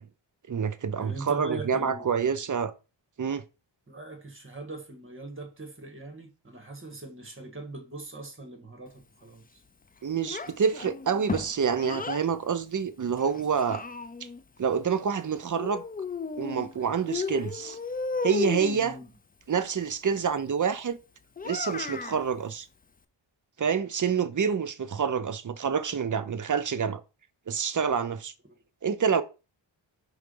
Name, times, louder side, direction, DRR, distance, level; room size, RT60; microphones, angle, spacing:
voice 1, 0.5-2.7 3.2-3.4 10.0-13.8 14.6-15.8 16.4-17.8 18.2-19.0 19.5-21.0 21.4-22.7 23.6-27.0 27.5-28.3 28.8-29.2, right 6 dB, 40° right, 0.7 m, -27 dB
voice 2, 1.0-2.4 3.9-9.6 18.7-19.1, right 2 dB, 25° right, 1.5 m, -40 dB
Child speech kid speaking, 10.3-12.3 13.2-14.4 15.6-16.7 17.1-18.8 21.4-22.2, left 4 dB, 20° left, 0.3 m, -34 dB
4.7 x 3.8 x 5.4 m
wide cardioid pair, 115°, 47 cm